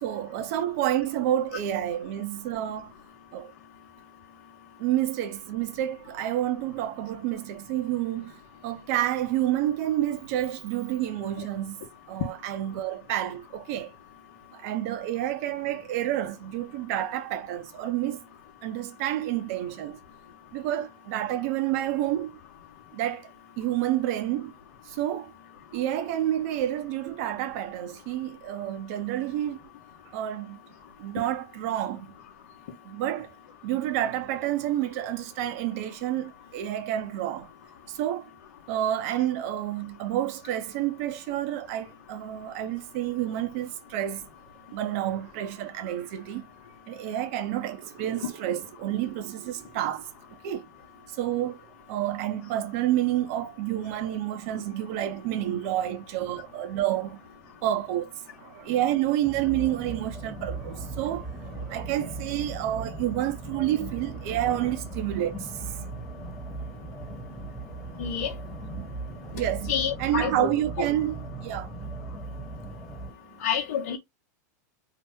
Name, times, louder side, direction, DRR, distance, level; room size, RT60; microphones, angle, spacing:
voice 1, 0.0-2.9 3.3-3.5 4.8-13.9 14.5-18.2 18.6-20.0 20.5-22.4 22.9-24.5 24.9-25.3 25.7-29.6 30.1-30.6 31.0-32.2 32.8-33.3 33.6-37.5 37.9-38.3 38.7-44.3 44.7-46.4 46.9-50.1 50.4-50.7 51.1-51.6 51.9-57.2 57.6-68.3 68.7-69.7 70.0-72.2 72.6-72.8 73.3-73.4, right 12 dB, 55° right, 0.6 m, -29 dB
sound 1, 59.2-73.1, right 2 dB, ahead, 0.7 m, -38 dB
voice 2, 68.0-68.3 69.7-70.5 73.4-74.0, left 8 dB, 70° left, 0.8 m, -28 dB
2.8 x 2.1 x 3.4 m
supercardioid pair, 125°, 9 cm